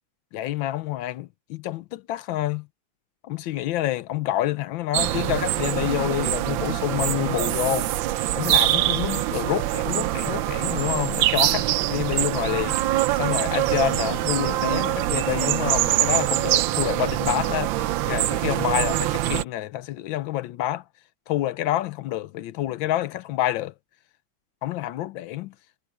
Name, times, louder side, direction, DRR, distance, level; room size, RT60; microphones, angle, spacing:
voice 1, 0.3-2.7 3.2-7.9 8.3-12.8 13.2-17.7 18.1-20.8 21.3-23.7 24.6-25.5, left 14 dB, 80° left, 1.4 m, -28 dB
sound 1, 4.9-19.4, right 14 dB, 85° right, 1.4 m, -24 dB
omnidirectional pair, 2.1 m